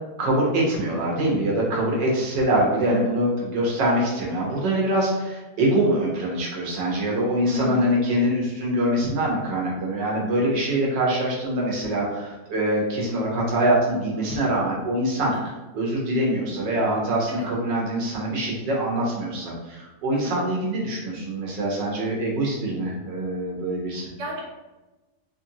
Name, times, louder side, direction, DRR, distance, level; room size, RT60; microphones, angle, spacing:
voice 1, 0.2-15.3 15.7-24.1, right 1 dB, 80° right, -3 dB, 1.7 m, -24 dB
voice 2, 7.4-7.9 17.3-17.4 20.1-20.3 24.2-24.4, left 1 dB, 50° right, -3 dB, 0.4 m, -33 dB
4.2 x 2.9 x 2.8 m, 1.1 s
omnidirectional pair, 1.9 m